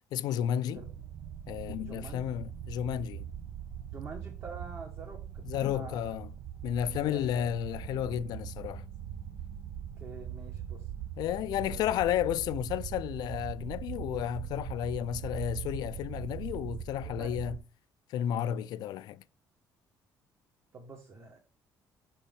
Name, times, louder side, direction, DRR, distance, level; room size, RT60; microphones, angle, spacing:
voice 1, 0.1-0.8 1.5-3.3 5.4-6.3 6.6-8.8 11.2-17.6 18.1-19.2, left 11 dB, 75° left, 0.4 m, -32 dB
sound 1, 0.7-17.6, right 9 dB, 60° right, 0.6 m, -41 dB
voice 2, 1.8-2.3 3.9-6.2 7.0-7.5 10.0-10.9 11.6-11.8 17.2-17.5 20.7-21.4, right 4 dB, 35° right, 1.4 m, -46 dB
Bass guitar, 7.8-14.1, equal, 20° right, 1.5 m, -57 dB
5.5 x 4.3 x 5.1 m
cardioid pair, 120°, 7 cm